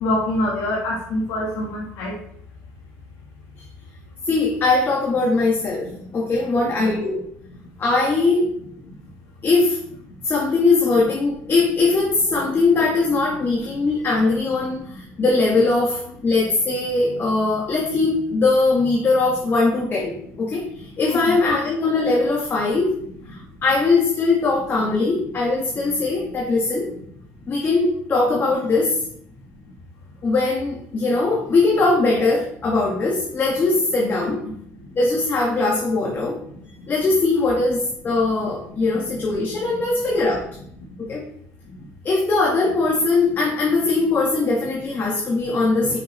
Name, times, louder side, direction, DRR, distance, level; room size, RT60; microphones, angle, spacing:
voice 1, 0.0-2.1 5.8-5.9 6.5-6.7 21.1-21.2, left 1 dB, 75° left, -4 dB, 1.4 m, -25 dB
voice 2, 4.3-7.2 7.8-8.5 9.4-9.8 10.2-23.0 23.3-26.9 27.5-29.1 30.2-34.4 35.0-36.4 36.9-40.5 41.0-41.2 42.0-46.0, left 3 dB, 35° left, -2 dB, 1.4 m, -20 dB
6.1 x 5.8 x 3.2 m, 0.68 s
supercardioid pair, 95°, 6 cm